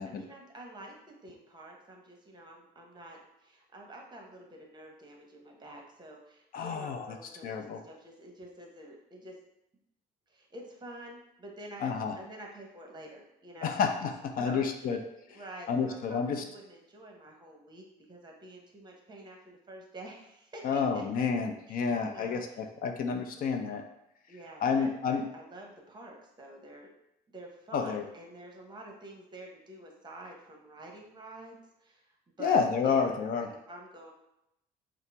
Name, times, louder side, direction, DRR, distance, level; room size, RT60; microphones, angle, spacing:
voice 1, 0.0-9.4 10.3-13.8 14.4-14.7 15.3-21.3 21.7-22.6 24.3-26.9 27.3-34.1, right 1 dB, 25° right, 1 dB, 0.9 m, -48 dB
voice 2, 6.5-7.1 7.4-7.8 11.8-12.1 13.6-15.0 15.3-15.4 15.7-16.4 20.6-23.8 24.6-25.3 27.7-28.0 32.4-33.5, left 5 dB, 55° left, 5 dB, 0.5 m, -30 dB
5.5 x 2.0 x 3.4 m, 0.83 s
cardioid pair, 110°, 17 cm